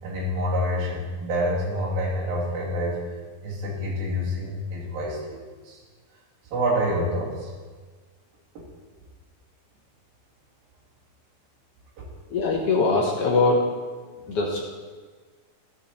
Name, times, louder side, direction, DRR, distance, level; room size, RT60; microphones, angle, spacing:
voice 1, 0.0-3.0 3.4-5.4 5.6-5.8 6.5-7.5 12.0-12.1 14.2-14.3, equal, 70° right, -6 dB, 4.3 m, -27 dB
voice 2, 12.3-13.9 14.3-14.6, left 3 dB, 75° left, -2 dB, 1.4 m, -22 dB
13.0 x 7.7 x 4.2 m, 1.4 s
omnidirectional pair, 4.3 m